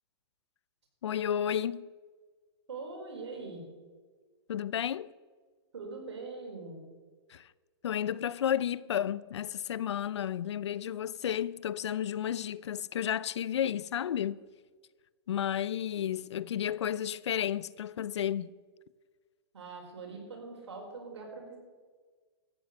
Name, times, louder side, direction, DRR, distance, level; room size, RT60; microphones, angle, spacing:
voice 1, 1.0-1.9 4.5-5.1 7.3-7.5 7.8-14.4 15.3-18.5, left 10 dB, 85° left, 0.5 m, -32 dB
voice 2, 2.7-3.6 5.7-6.8 19.5-21.6, right 3 dB, 85° right, 4.7 m, -42 dB
14.0 x 9.5 x 6.7 m
hypercardioid pair, 130°, 14 cm